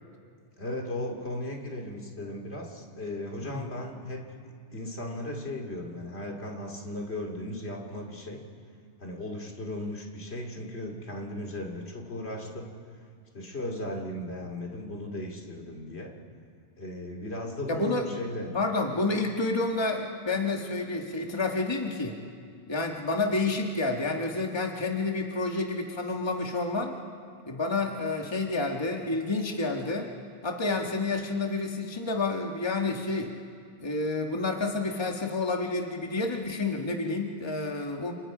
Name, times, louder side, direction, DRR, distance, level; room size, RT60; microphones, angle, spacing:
voice 1, 0.6-8.4 9.0-12.7 13.3-16.1 16.8-18.5, left 1 dB, 70° left, 1 dB, 2.9 m, -36 dB
voice 2, 17.7-18.1 18.5-22.2 22.7-26.9 27.5-30.1 30.4-33.3 33.8-38.1, left 3 dB, 25° left, 2 dB, 1.5 m, -29 dB
29.0 x 28.5 x 5.0 m, 2.3 s
omnidirectional pair, 1.1 m